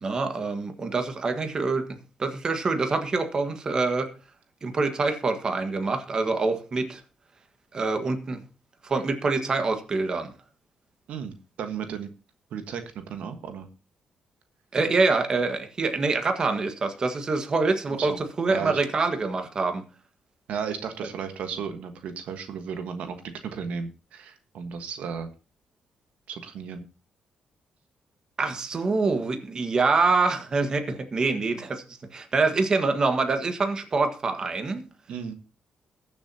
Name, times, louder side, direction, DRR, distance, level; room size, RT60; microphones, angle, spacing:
voice 1, 0.0-4.1 4.6-7.0 7.7-8.4 8.8-10.3 14.7-19.8 28.4-31.8 32.1-34.8, right 3 dB, 35° right, 7 dB, 1.6 m, -25 dB
voice 2, 11.1-12.1 12.5-13.7 17.9-18.2 18.5-18.8 20.5-23.2 23.4-25.3 26.3-26.8 35.1-35.3, right 6 dB, 80° right, 8 dB, 1.4 m, -34 dB
21.0 x 7.2 x 2.8 m, 0.34 s
cardioid pair, 130°, 2 cm